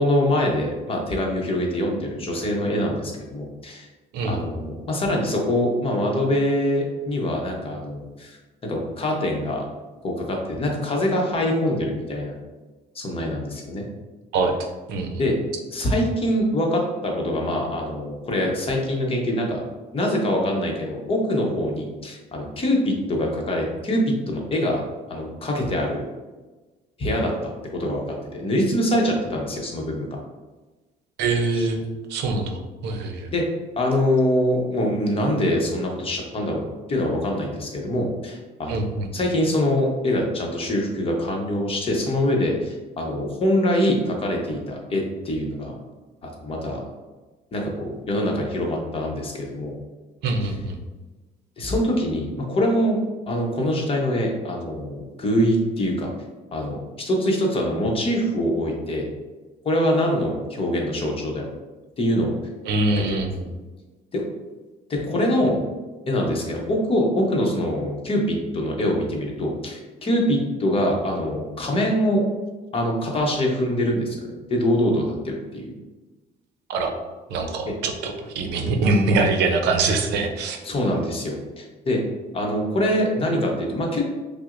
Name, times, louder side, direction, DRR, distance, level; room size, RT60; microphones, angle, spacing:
voice 1, 0.0-3.9 4.2-8.4 8.6-9.7 10.0-12.3 12.9-13.8 15.2-15.3 15.7-19.6 19.9-24.8 25.1-26.0 27.0-30.2 31.5-31.7 33.3-33.4 33.8-38.8 39.1-45.8 46.2-46.8 47.5-49.8 51.6-53.0 53.3-56.1 56.5-59.1 59.6-61.5 62.0-62.3 63.1-63.2 64.1-64.2 64.9-65.6 66.1-72.2 72.7-75.7 80.6-82.0 82.3-84.0, left 1 dB, 35° left, 0 dB, 0.9 m, -24 dB
voice 2, 14.9-15.2 31.2-31.8 32.1-33.3 38.7-39.1 50.2-50.8 62.6-63.4 76.7-76.9 77.3-80.6, right 3 dB, 85° right, 4 dB, 0.6 m, -23 dB
5.8 x 2.0 x 2.5 m, 1.2 s
cardioid pair, 110°, 17 cm